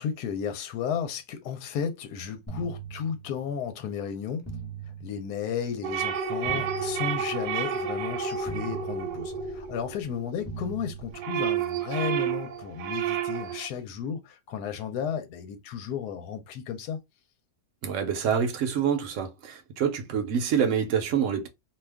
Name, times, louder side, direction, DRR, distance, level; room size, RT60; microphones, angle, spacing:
voice 1, 0.0-4.5 5.0-17.0, left 7 dB, 75° left, 1.1 m, -33 dB
sound 1, 2.5-3.6 4.5-5.6 6.5-7.6 8.5-9.6 10.5-11.6, right 6 dB, 15° left, 0.5 m, -41 dB
sound 2, 5.8-10.5 10.9-13.7, right 7 dB, 90° right, 1.2 m, -30 dB
voice 2, 17.8-21.5, right 7 dB, 60° right, 0.9 m, -26 dB
2.7 x 2.3 x 3.4 m
omnidirectional pair, 1.7 m